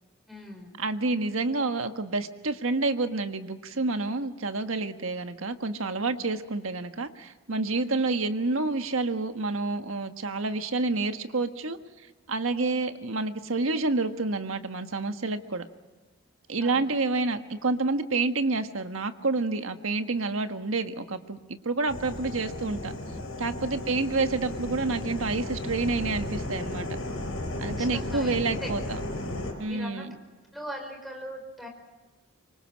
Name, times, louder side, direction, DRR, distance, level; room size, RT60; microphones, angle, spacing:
voice 1, 0.3-0.7 16.6-16.8 23.8-23.9 27.7-28.4 28.6-28.7 29.7-30.1 30.5-31.7, equal, ahead, 2 dB, 5.2 m, -40 dB
voice 2, 0.8-11.8 12.3-15.7 16.5-22.9 23.4-26.9 27.6-29.0 29.6-30.2, right 3 dB, 75° right, 8 dB, 1.5 m, -28 dB
sound 1, 21.9-29.5, left 1 dB, 80° left, 6.1 m, -34 dB
25.0 x 24.5 x 6.4 m, 1.2 s
head